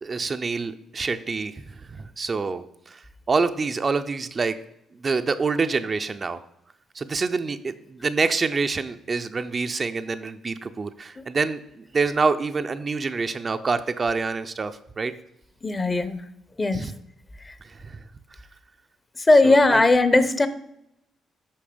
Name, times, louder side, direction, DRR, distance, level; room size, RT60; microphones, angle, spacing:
voice 1, 0.0-4.5 4.9-6.4 6.9-15.1 16.7-16.9 17.6-18.0 19.4-19.8, right 4 dB, 35° right, 9 dB, 0.5 m, -27 dB
voice 2, 15.6-16.2 16.6-16.9 17.4-17.5 19.2-20.5, left 2 dB, 25° left, 12 dB, 0.7 m, -18 dB
8.6 x 5.4 x 5.1 m, 0.80 s
cardioid pair, 90°, 0 cm